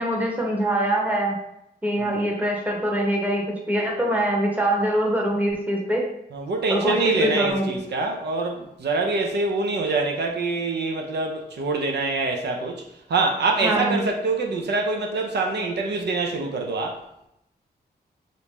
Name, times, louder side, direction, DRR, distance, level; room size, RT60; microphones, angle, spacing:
voice 1, 0.0-1.4 1.8-6.1 6.7-7.8 13.6-14.0, right 1 dB, 10° right, -2 dB, 0.8 m, -23 dB
voice 2, 6.3-12.8 13.1-17.0, right 3 dB, 80° right, 2 dB, 0.5 m, -25 dB
2.9 x 2.6 x 3.5 m, 0.79 s
wide cardioid pair, 95°, 17 cm